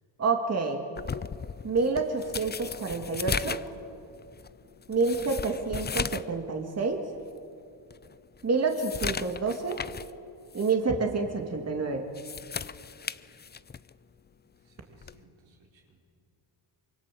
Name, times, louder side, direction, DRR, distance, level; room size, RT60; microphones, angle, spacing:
voice 1, 0.2-0.8 1.6-3.6 4.9-7.0 8.4-9.8 10.5-12.1, right 4 dB, 35° right, 4 dB, 2.2 m, -28 dB
sound 1, 1.0-6.4 6.7-6.8 7.4-7.5 7.9-10.1 10.5-10.7 12.0-13.9 15.0-15.2, left 6 dB, 25° left, 0.5 m, -36 dB
voice 2, 14.6-16.0, right 3 dB, 75° right, 0 dB, 4.5 m, -62 dB
25.5 x 23.5 x 7.7 m, 2.6 s
cardioid pair, 100°, 45 cm